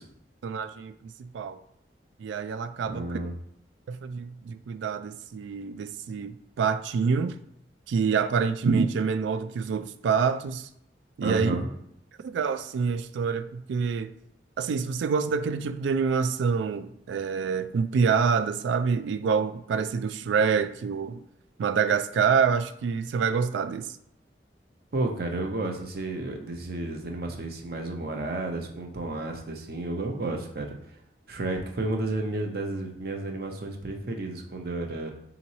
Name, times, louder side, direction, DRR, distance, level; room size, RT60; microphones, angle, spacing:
voice 1, 0.4-0.9 1.2-1.6 2.2-3.2 3.9-6.3 6.6-7.4 7.9-10.7 11.2-11.6 12.2-14.1 14.6-21.2 21.6-23.9, right 5 dB, 85° right, 0.3 m, -26 dB
voice 2, 2.9-3.3 11.2-11.7 24.9-30.7 31.3-35.1, right 2 dB, 55° right, 0.6 m, -32 dB
3.7 x 2.9 x 4.1 m
head